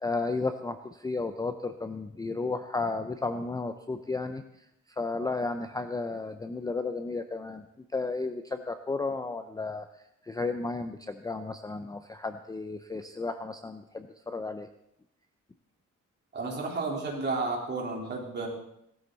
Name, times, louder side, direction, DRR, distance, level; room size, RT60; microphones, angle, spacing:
voice 1, 0.0-4.4 5.0-7.6 7.9-9.9 10.3-14.7, left 3 dB, 10° left, 8 dB, 0.5 m, -33 dB
voice 2, 16.3-18.5, right 3 dB, 35° right, -2 dB, 3.7 m, -32 dB
17.5 x 13.0 x 4.0 m, 0.77 s
cardioid pair, 150°, 31 cm